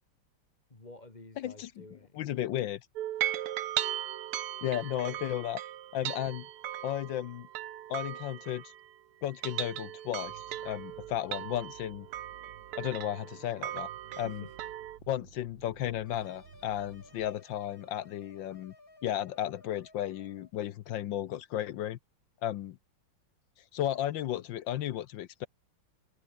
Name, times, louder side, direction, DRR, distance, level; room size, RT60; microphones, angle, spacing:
voice 1, 0.7-2.3 4.8-5.3 14.1-14.6, left 2 dB, 20° left, 2.6 m, -50 dB
voice 2, 1.4-1.7 2.1-2.8 4.6-5.6 5.9-6.5 6.8-7.5 7.9-8.7 9.2-12.1 12.7-13.9 14.2-14.4 15.1-18.7 19.0-22.0 22.4-22.8 23.7-25.5, left 12 dB, 70° left, 1.3 m, -34 dB
sound 1, 3.0-8.9 9.3-15.0, right 12 dB, 90° right, 2.0 m, -38 dB
sound 2, 10.2-17.3, right 8 dB, 65° right, 2.3 m, -56 dB
sound 3, 16.0-20.5, left 2 dB, 40° left, 5.8 m, -57 dB
omnidirectional pair, 2.3 m